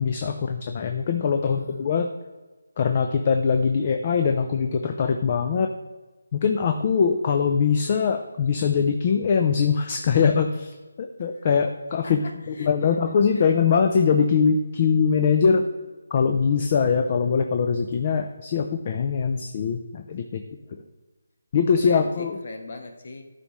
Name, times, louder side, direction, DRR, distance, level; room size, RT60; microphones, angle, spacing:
voice 1, 0.0-2.1 2.8-5.7 6.3-12.2 12.6-15.6 16.1-20.4 21.5-22.4, left 6 dB, 35° left, 5 dB, 0.4 m, -22 dB
voice 2, 1.4-1.9 11.3-11.4 12.0-13.0 13.3-13.5 20.6-20.9 21.8-23.2, left 2 dB, 50° left, 5 dB, 1.1 m, -41 dB
12.0 x 4.1 x 3.0 m, 1.2 s
figure-of-eight pair, 165°, 0 cm